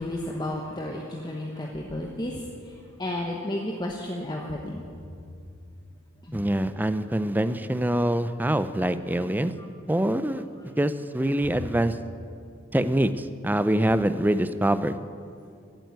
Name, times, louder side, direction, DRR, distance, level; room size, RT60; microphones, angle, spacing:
voice 1, 0.0-2.7 3.0-4.8 6.2-6.4 11.5-11.6, left 1 dB, 20° left, 1 dB, 1.0 m, -32 dB
voice 2, 6.3-9.5 9.9-10.4 10.8-12.0 12.7-15.0, right 1 dB, 10° right, 12 dB, 0.5 m, -24 dB
15.5 x 9.2 x 9.3 m, 2.4 s
head